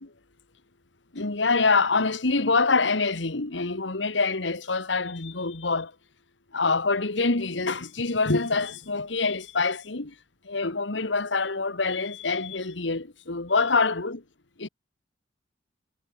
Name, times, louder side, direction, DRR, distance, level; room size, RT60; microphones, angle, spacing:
voice 1, 1.1-5.9 6.5-10.1 10.5-14.2 14.6-14.7, left 4 dB, 85° left, 1.7 m, -25 dB
head